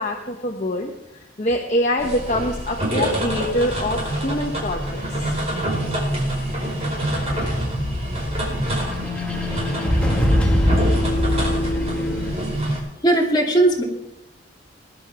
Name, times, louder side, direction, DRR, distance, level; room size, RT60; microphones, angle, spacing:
voice 1, 0.0-5.2, left 1 dB, 40° left, 2 dB, 1.1 m, -25 dB
sound 1, 2.0-12.8, right 1 dB, 35° right, 4.8 m, -26 dB
sound 2, 7.0-12.3, left 1 dB, 5° left, 1.4 m, -23 dB
voice 2, 13.0-13.8, right 1 dB, 25° left, -3 dB, 2.4 m, -17 dB
20.5 x 11.0 x 3.5 m, 0.92 s
head